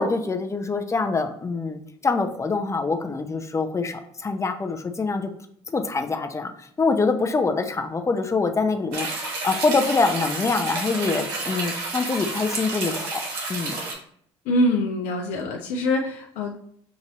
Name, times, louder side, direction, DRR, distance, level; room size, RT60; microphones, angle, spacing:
voice 1, 0.0-5.3 5.7-13.2 13.5-13.8, left 4 dB, 20° left, 6 dB, 0.6 m, -25 dB
sound 1, 8.9-13.9, right 3 dB, 70° right, 1.1 m, -30 dB
voice 2, 14.4-16.6, left 1 dB, 70° left, 2 dB, 0.6 m, -24 dB
5.9 x 2.7 x 3.0 m, 0.66 s
hypercardioid pair, 60°, 14 cm